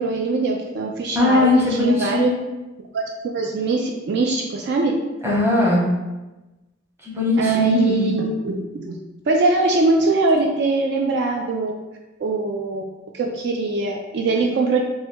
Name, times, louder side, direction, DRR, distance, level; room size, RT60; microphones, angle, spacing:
voice 1, 0.0-2.3 2.9-4.9 7.4-9.0 9.3-11.7 12.2-12.8 13.1-14.8, right 3 dB, 55° right, 1 dB, 0.3 m, -22 dB
voice 2, 1.1-2.4 5.2-5.9 7.0-8.1, left 2 dB, 10° right, -6 dB, 0.9 m, -19 dB
3.3 x 2.2 x 4.4 m, 1.1 s
head